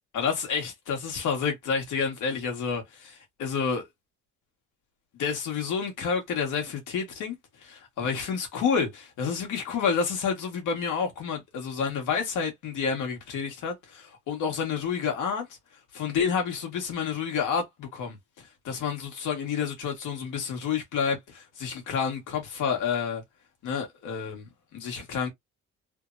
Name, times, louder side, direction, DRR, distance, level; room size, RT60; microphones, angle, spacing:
voice 1, 0.1-3.9 5.2-7.3 7.6-15.5 15.9-18.2 18.6-23.2 23.6-25.3, left 6 dB, 80° left, 1.4 m, -29 dB
3.3 x 2.0 x 2.5 m
cardioid pair, 90°, 30 cm